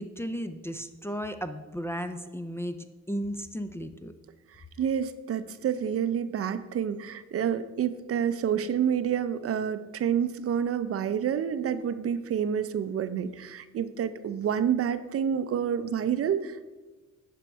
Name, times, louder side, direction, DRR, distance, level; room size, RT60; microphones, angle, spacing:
voice 1, 0.0-2.8 3.1-4.1, equal, 10° left, 7 dB, 0.4 m, -34 dB
voice 2, 4.5-16.7, right 8 dB, 50° right, 12 dB, 0.5 m, -28 dB
9.1 x 5.3 x 4.5 m, 1.2 s
cardioid pair, 90°, 30 cm